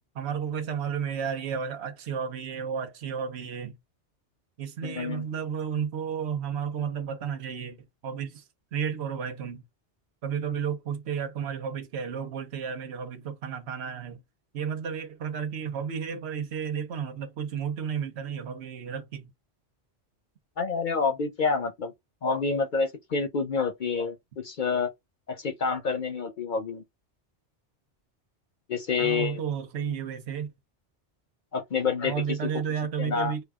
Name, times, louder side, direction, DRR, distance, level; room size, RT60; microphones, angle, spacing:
voice 1, 0.1-3.8 4.6-7.8 8.0-8.4 8.7-9.6 10.2-14.2 14.5-19.3 29.0-30.5 32.1-33.4, right 7 dB, 70° right, 1.1 m, -32 dB
voice 2, 4.8-5.3 20.6-21.9 22.2-24.9 25.3-26.8 28.7-29.4 31.5-32.4 33.0-33.3, left 5 dB, 50° left, 0.7 m, -28 dB
5.0 x 2.3 x 3.5 m
omnidirectional pair, 1.2 m